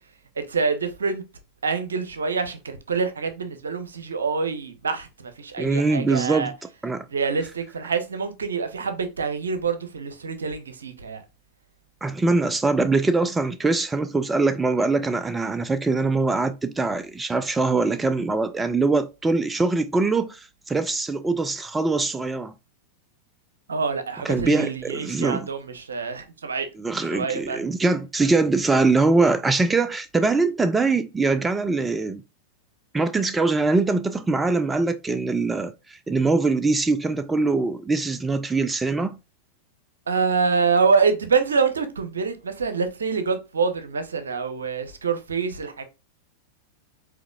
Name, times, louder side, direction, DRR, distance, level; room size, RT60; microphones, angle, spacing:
voice 1, 0.4-1.2 1.6-6.5 7.1-11.2 23.7-26.7 27.1-27.6 40.1-45.9, right 5 dB, 70° right, 0.8 m, -26 dB
voice 2, 5.6-6.5 6.8-7.1 12.0-22.5 24.2-25.5 26.8-32.2 32.9-39.2, right 3 dB, 10° right, 0.4 m, -23 dB
5.0 x 4.0 x 2.4 m
figure-of-eight pair, 90°, 0 cm